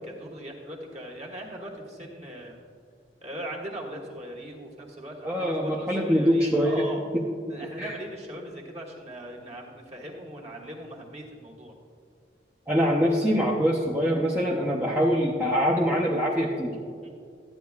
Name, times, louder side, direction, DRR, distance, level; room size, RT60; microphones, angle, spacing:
voice 1, 0.0-2.6 3.2-7.0 7.5-11.7 17.0-17.2, right 1 dB, 35° right, -2 dB, 1.4 m, -40 dB
voice 2, 5.2-6.8 7.5-7.9 12.7-16.8, equal, 10° right, -4 dB, 0.6 m, -24 dB
12.5 x 9.3 x 2.4 m, 2.3 s
head